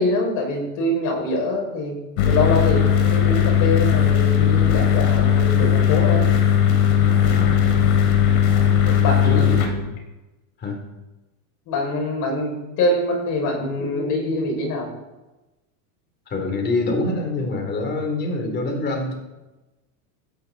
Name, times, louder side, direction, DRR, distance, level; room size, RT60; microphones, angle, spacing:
voice 1, 0.0-2.0 2.2-6.3 8.8-9.4 11.7-14.9, left 2 dB, 40° left, 1 dB, 6.1 m, -24 dB
sound 1, 2.2-9.7, left 9 dB, 65° left, 3.5 m, -17 dB
voice 2, 7.3-8.0 9.2-9.9 10.6-10.8 16.3-19.2, left 2 dB, 20° left, 3 dB, 3.3 m, -26 dB
16.5 x 13.5 x 4.1 m, 1.1 s
supercardioid pair, 155°, 47 cm